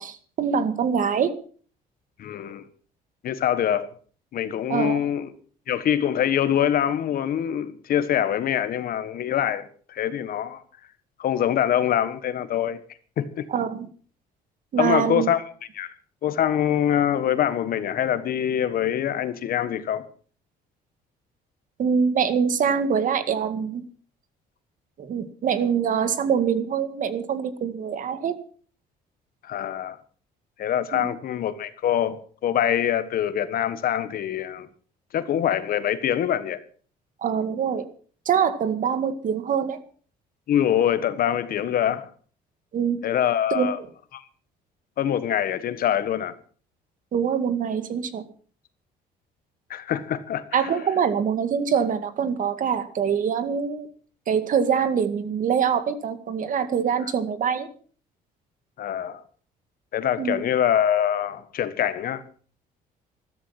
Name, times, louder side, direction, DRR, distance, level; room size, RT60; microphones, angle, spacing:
voice 1, 0.0-1.3 4.7-5.0 13.5-13.9 14.7-15.3 21.8-23.8 25.0-28.4 30.9-31.1 37.2-37.9 38.3-39.8 42.7-43.0 43.5-43.7 47.1-48.3 50.5-53.9 54.3-57.7 60.2-60.4, right 7 dB, 50° right, 2.1 m, -24 dB
voice 2, 2.2-2.6 3.2-3.9 4.3-5.3 5.7-10.6 11.2-12.8 13.2-13.4 14.8-15.4 15.7-15.9 16.2-20.0 29.4-30.0 30.6-34.7 35.1-36.6 40.5-42.1 43.0-43.8 44.1-44.2 45.0-46.3 49.7-50.7 58.8-59.2 59.9-62.2, left 10 dB, 60° left, 1.5 m, -24 dB
14.0 x 13.0 x 5.9 m
cardioid pair, 110°, 17 cm